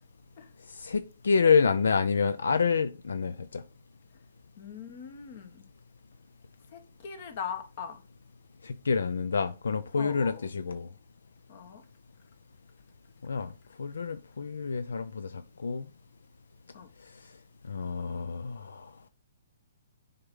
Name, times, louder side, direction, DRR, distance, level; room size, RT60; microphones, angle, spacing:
voice 1, 0.7-3.6 8.6-10.9 13.2-13.5 13.8-15.9 17.7-18.9, left 5 dB, 85° left, 0.4 m, -28 dB
voice 2, 4.6-5.6 6.7-8.0 10.0-10.5 11.5-11.8 16.7-16.9, left 7 dB, 50° left, 1.5 m, -40 dB
6.6 x 3.6 x 5.5 m
hypercardioid pair, 145°, 0 cm